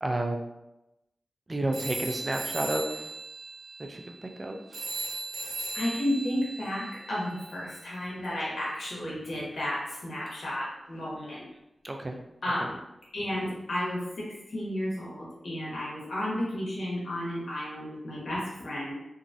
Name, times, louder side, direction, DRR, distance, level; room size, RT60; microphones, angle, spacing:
voice 1, 0.0-0.4 1.5-3.1 3.9-4.6 11.8-12.2, right 1 dB, 30° right, 3 dB, 0.3 m, -31 dB
sound 1, 1.7-7.8, right 2 dB, 75° right, 0.8 m, -38 dB
voice 2, 5.7-11.4 12.4-12.8 13.1-18.9, left 1 dB, 75° left, -6 dB, 1.2 m, -32 dB
3.0 x 2.6 x 2.5 m, 0.90 s
wide cardioid pair, 125°, 0 cm